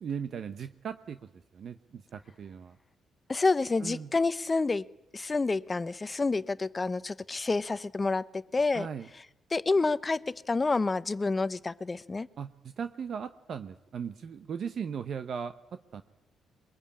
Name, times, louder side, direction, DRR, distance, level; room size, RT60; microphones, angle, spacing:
voice 1, 0.0-2.8 3.8-4.1 8.7-9.1 12.4-15.5 15.9-16.0, right 7 dB, 55° right, 10 dB, 0.9 m, -38 dB
voice 2, 3.3-4.8 5.1-8.9 9.5-12.3, left 3 dB, 25° left, 15 dB, 0.8 m, -28 dB
22.5 x 22.0 x 8.7 m, 0.92 s
cardioid pair, 90°, 0 cm